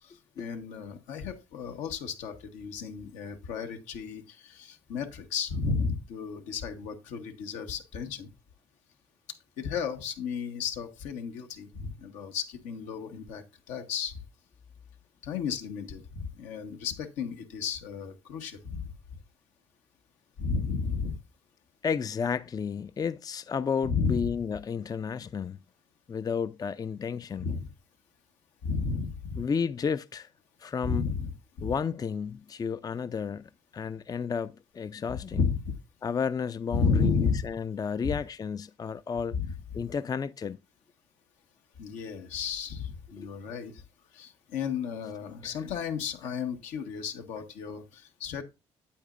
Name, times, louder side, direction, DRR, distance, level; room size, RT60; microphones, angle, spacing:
voice 1, 0.4-8.3 9.6-14.1 15.2-18.9 20.4-21.2 23.8-24.3 27.4-27.7 28.6-29.4 30.8-31.3 31.6-31.7 35.1-35.8 36.7-37.5 38.0-38.1 39.3-39.5 41.8-43.7 44.1-48.4, left 5 dB, 85° left, 1.3 m, -33 dB
voice 2, 21.8-25.6 26.1-27.5 29.4-30.3 30.6-31.0 31.6-35.4 36.0-39.4 39.7-40.6 43.2-43.3 45.4-45.5, left 6 dB, 30° left, 0.4 m, -32 dB
8.6 x 8.5 x 2.5 m
supercardioid pair, 60°, 12 cm